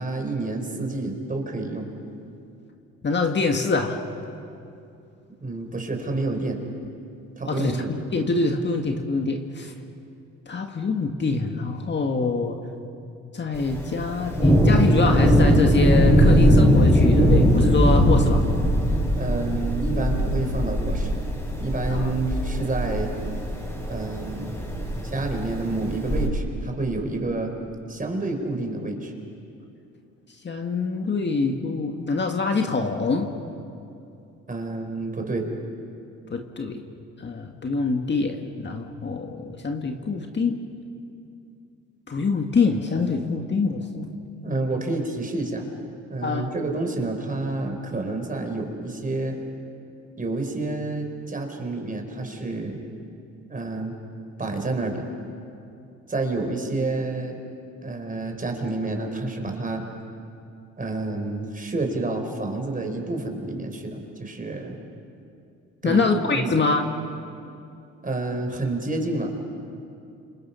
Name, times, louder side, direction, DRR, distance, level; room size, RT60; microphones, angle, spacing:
voice 1, 0.0-1.9 5.4-6.6 7.4-7.9 19.1-21.2 21.6-23.1 23.9-24.6 25.0-27.5 27.9-29.1 34.5-35.5 44.4-45.7 46.1-49.4 50.2-52.8 53.5-53.9 54.4-55.1 56.1-57.4 57.8-59.8 60.8-64.8 65.8-66.1 66.3-66.6 68.0-69.4, right 2 dB, 25° right, 3 dB, 4.5 m, -29 dB
voice 2, 3.0-4.0 7.5-9.7 10.5-12.6 13.3-18.5 21.9-22.1 30.4-33.3 36.3-36.9 37.2-40.6 42.1-44.1 44.4-44.5 46.2-46.5 65.8-66.9, left 4 dB, 35° left, 3 dB, 1.9 m, -25 dB
Thunder, 13.5-26.3, equal, 10° left, 6.1 m, -20 dB
30.0 x 27.5 x 5.8 m, 2.6 s
cardioid pair, 90°, 30 cm